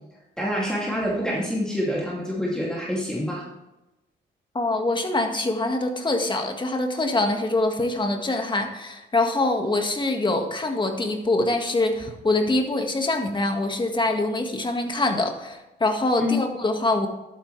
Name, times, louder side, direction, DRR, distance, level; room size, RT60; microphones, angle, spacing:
voice 1, 0.4-3.5 16.2-16.4, left 1 dB, 5° left, -5 dB, 2.7 m, -26 dB
voice 2, 4.5-17.1, left 2 dB, 25° left, 4 dB, 1.9 m, -24 dB
12.0 x 9.1 x 3.4 m, 0.99 s
cardioid pair, 90°, 20 cm